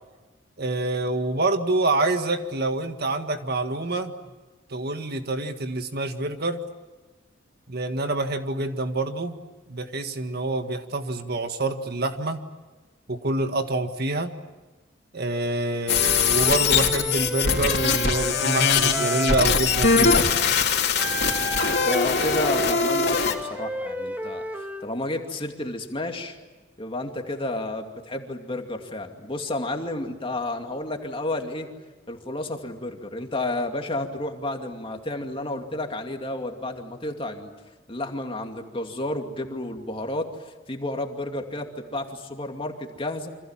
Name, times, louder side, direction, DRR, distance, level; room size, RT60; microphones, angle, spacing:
voice 1, 0.6-4.1 4.7-6.6 7.7-9.4 9.7-12.4 13.1-14.3 15.1-20.3, right 2 dB, 55° right, 7 dB, 1.8 m, -26 dB
sound 1, 15.9-23.3, left 5 dB, 55° left, 3.3 m, -22 dB
Wind instrument woodwind instrument, 15.9-20.2 21.0-24.9, right 1 dB, 10° right, 1.8 m, -32 dB
voice 2, 21.8-26.4 26.8-31.7 32.1-37.5 37.9-40.3 40.7-43.3, left 2 dB, 30° left, 4 dB, 2.5 m, -31 dB
28.5 x 26.0 x 7.5 m, 1.2 s
head